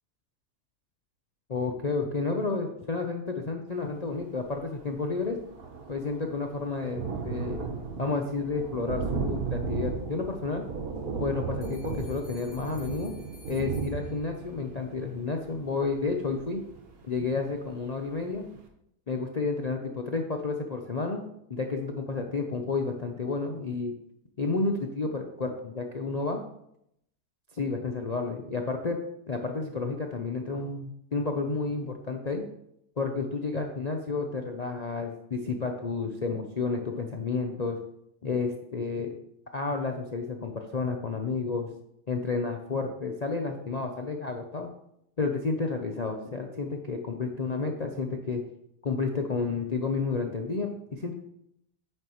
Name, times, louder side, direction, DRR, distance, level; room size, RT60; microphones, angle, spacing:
voice 1, 1.5-5.4 5.9-7.6 8.0-10.6 11.2-13.1 13.5-16.6 17.0-18.4 19.1-21.2 21.5-23.9 24.4-26.4 27.6-29.0 29.3-32.4 33.0-37.8 38.2-39.1 39.5-41.7 42.1-44.7 45.2-48.4 48.8-51.1, left 4 dB, 45° left, 3 dB, 0.5 m, -31 dB
Thunder, 4.5-4.6 4.8-17.4 17.9-18.0 18.3-18.4, right 5 dB, 65° right, 1.6 m, -35 dB
sound 1, 11.6-14.7, right 1 dB, ahead, 3.1 m, -55 dB
9.0 x 8.8 x 3.1 m, 0.75 s
omnidirectional pair, 1.7 m